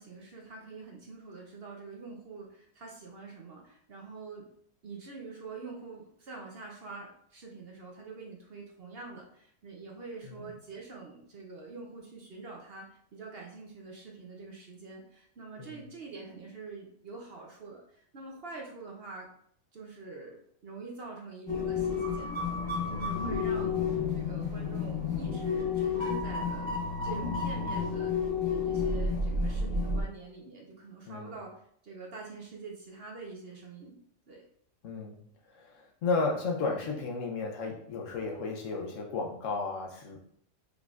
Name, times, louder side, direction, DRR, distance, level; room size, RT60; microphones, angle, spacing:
voice 1, 0.0-4.5 4.8-19.3 19.7-23.8 24.1-26.7 27.0-34.0 34.3-34.4, right 4 dB, 50° right, 0 dB, 0.8 m, -45 dB
sound 1, 21.5-30.0, left 4 dB, 20° left, 1.0 m, -31 dB
voice 2, 34.8-35.2 35.5-40.2, left 3 dB, 65° left, 1 dB, 1.1 m, -33 dB
5.0 x 3.8 x 2.4 m, 0.65 s
omnidirectional pair, 1.5 m